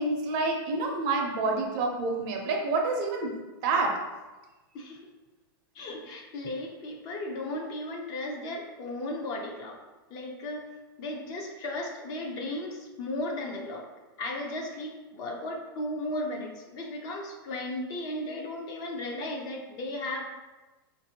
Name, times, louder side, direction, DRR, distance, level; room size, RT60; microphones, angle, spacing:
voice 1, 0.0-3.4 3.6-4.0, right 3 dB, 40° right, 2 dB, 0.6 m, -28 dB
voice 2, 5.7-9.8 10.1-10.6 11.0-13.9 14.2-20.2, left 1 dB, 35° left, 1 dB, 0.5 m, -35 dB
4.3 x 2.6 x 2.8 m, 1.2 s
supercardioid pair, 155°, 12 cm